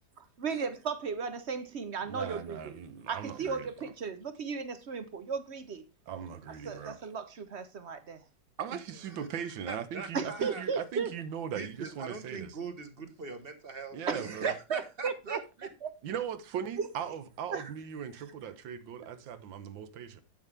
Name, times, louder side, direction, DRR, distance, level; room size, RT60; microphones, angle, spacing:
voice 1, 0.4-2.8 3.1-5.8 6.6-8.2 10.1-11.1 14.1-15.4 15.8-15.9 16.8-16.9 17.5-17.7, right 5 dB, 55° right, 0.7 m, -35 dB
voice 2, 2.1-3.7 6.1-7.0 8.6-12.5 13.9-14.6 16.0-20.2, right 8 dB, 80° right, 1.7 m, -39 dB
voice 3, 9.0-10.6 11.5-15.7, right 4 dB, 35° right, 1.1 m, -42 dB
8.8 x 8.4 x 3.3 m
omnidirectional pair, 2.0 m